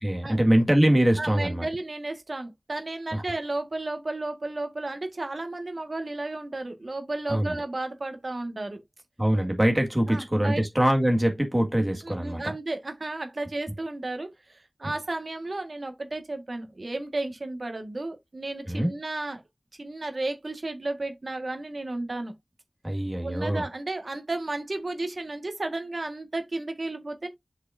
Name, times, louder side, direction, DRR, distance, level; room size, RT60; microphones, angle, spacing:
voice 1, 0.0-1.7 3.1-3.2 7.3-7.6 9.2-12.5 18.7-18.9 22.8-23.6, right 1 dB, 20° right, 1.9 m, -23 dB
voice 2, 1.2-8.8 10.1-10.6 12.0-19.4 19.8-22.3 23.2-27.3, right 2 dB, 55° right, 1.7 m, -33 dB
7.8 x 5.0 x 2.7 m
wide cardioid pair, 65°, 0 cm